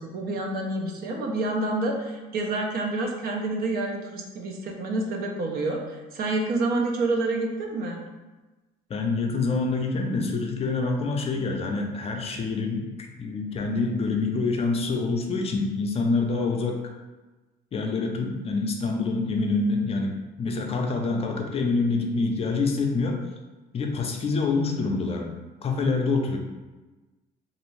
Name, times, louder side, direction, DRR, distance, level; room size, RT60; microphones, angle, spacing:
voice 1, 0.0-8.0, right 2 dB, 65° right, 1 dB, 0.6 m, -28 dB
voice 2, 8.9-16.8 17.7-23.2 23.7-25.3 25.6-26.4, left 3 dB, 35° left, 2 dB, 0.4 m, -26 dB
2.6 x 2.5 x 3.1 m, 1.2 s
cardioid pair, 110°, 17 cm